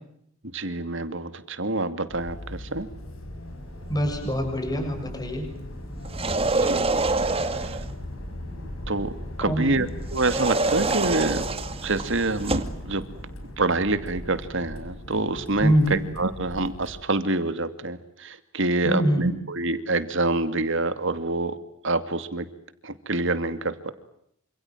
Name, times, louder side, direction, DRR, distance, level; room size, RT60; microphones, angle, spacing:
voice 1, 0.4-2.9 6.5-6.9 7.1-7.8 8.9-11.4 11.8-13.0 13.6-21.6 21.8-22.5 22.8-23.9, right 2 dB, 65° right, 11 dB, 2.6 m, -27 dB
sound 1, 2.1-17.0, left 1 dB, 85° left, 6.8 m, -38 dB
voice 2, 3.9-5.5 9.4-9.8 15.6-16.0 18.8-19.3, equal, 20° left, 4 dB, 7.6 m, -24 dB
sound 2, 6.0-7.9 10.1-12.8, right 3 dB, 30° right, 2.2 m, -26 dB
28.5 x 27.0 x 7.6 m, 0.73 s
head